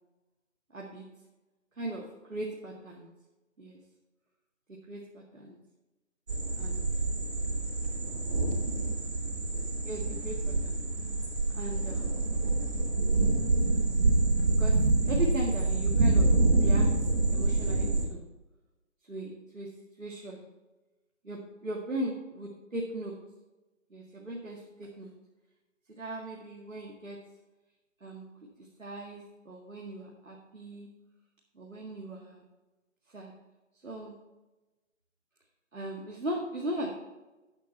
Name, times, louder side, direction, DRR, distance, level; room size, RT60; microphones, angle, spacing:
voice 1, 0.7-1.0 1.8-3.1 3.6-3.8 4.7-5.6 6.6-6.9 9.8-10.9 11.5-12.2 14.6-14.8 15.0-16.9 17.3-18.3 19.0-19.7 20.0-20.4 21.2-23.2 23.9-25.2 25.9-27.2 28.0-28.3 28.6-30.9 31.5-32.5 33.1-33.3 33.7-34.2 35.7-36.9, right 1 dB, 85° right, -2 dB, 2.0 m, -38 dB
sound 1, 6.3-18.0, right 2 dB, 50° right, 3.3 m, -26 dB
10.5 x 7.7 x 4.4 m, 1.1 s
figure-of-eight pair, 150°, 38 cm